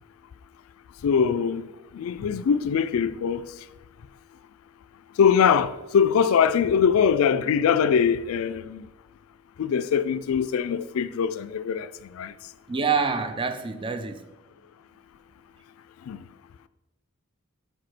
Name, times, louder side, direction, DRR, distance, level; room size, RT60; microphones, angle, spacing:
voice 1, 1.0-1.7 1.9-3.5 5.2-8.9 9.6-11.9 12.1-12.3 16.1-16.2, left 7 dB, 85° left, 0.3 m, -22 dB
voice 2, 12.7-14.2, right 5 dB, 25° right, 0.5 m, -26 dB
5.0 x 4.9 x 5.9 m
head